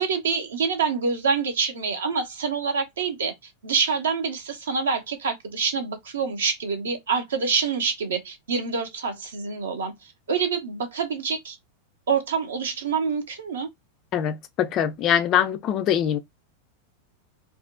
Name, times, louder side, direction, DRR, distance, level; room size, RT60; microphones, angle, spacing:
voice 1, 0.0-3.3 3.6-11.6 12.1-13.7, right 5 dB, 65° right, 0.5 m, -26 dB
voice 2, 14.1-16.2, left 9 dB, 35° left, 0.4 m, -23 dB
2.5 x 2.0 x 2.4 m
figure-of-eight pair, 90°, 0 cm